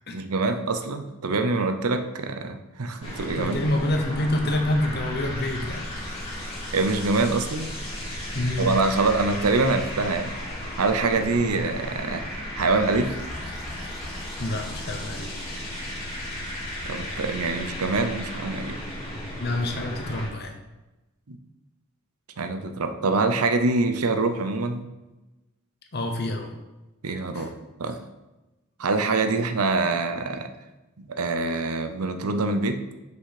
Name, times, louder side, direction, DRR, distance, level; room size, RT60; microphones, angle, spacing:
voice 1, 0.1-3.6 6.7-7.7 8.6-10.3 10.8-13.2 16.9-18.8 21.3-21.4 22.4-24.8 27.0-27.5 27.8-28.0 28.8-30.5 31.0-32.8, right 3 dB, 85° right, 8 dB, 0.7 m, -25 dB
sound 1, 3.0-20.3, left 1 dB, 25° left, 2.3 m, -35 dB
voice 2, 3.4-6.4 8.3-8.7 11.5-11.6 14.4-15.5 19.4-20.5 25.9-26.5 27.3-27.5, left 1 dB, 45° left, 3 dB, 1.0 m, -27 dB
6.2 x 5.8 x 4.9 m, 1.0 s
head